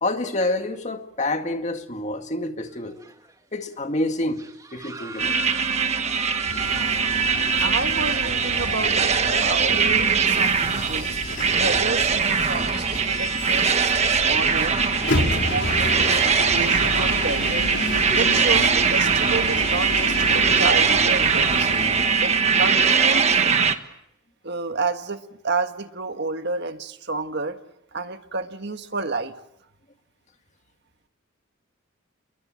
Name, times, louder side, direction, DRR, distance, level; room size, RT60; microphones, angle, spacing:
voice 1, 0.0-3.0 3.5-4.4 4.7-5.4, left 2 dB, 35° left, 2.0 m, -27 dB
sound 1, 2.6-3.5 3.8-3.9 4.3-9.2, right 3 dB, 15° right, 2.2 m, -40 dB
sound 2, 5.2-23.8, right 5 dB, 35° right, 1.4 m, -21 dB
sound 3, 6.5-22.1, left 2 dB, 60° left, 4.7 m, -31 dB
voice 2, 7.6-9.1 9.4-11.2 11.5-14.8 15.2-17.7 18.1-21.7 22.2-23.4 24.4-27.6 27.9-29.3, right 3 dB, 55° right, 1.6 m, -30 dB
28.5 x 22.0 x 7.5 m
head